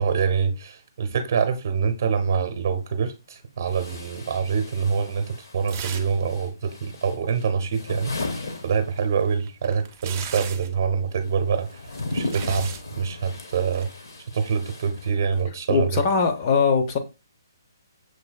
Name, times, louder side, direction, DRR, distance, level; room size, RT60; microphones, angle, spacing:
voice 1, 0.0-8.1 8.6-11.7 12.1-13.9 14.3-16.0, right 6 dB, 50° right, 0.9 m, -25 dB
sound 1, 2.7-2.8 3.6-9.5 9.7-15.6, left 2 dB, 65° left, 1.2 m, -37 dB
sound 2, 5.7-6.2 6.5-6.6 9.0-10.8 11.7-12.9 13.7-13.9, right 8 dB, 30° right, 0.5 m, -38 dB
voice 2, 15.7-17.0, left 5 dB, 30° left, 0.7 m, -21 dB
6.5 x 3.1 x 2.3 m
hypercardioid pair, 155°, 2 cm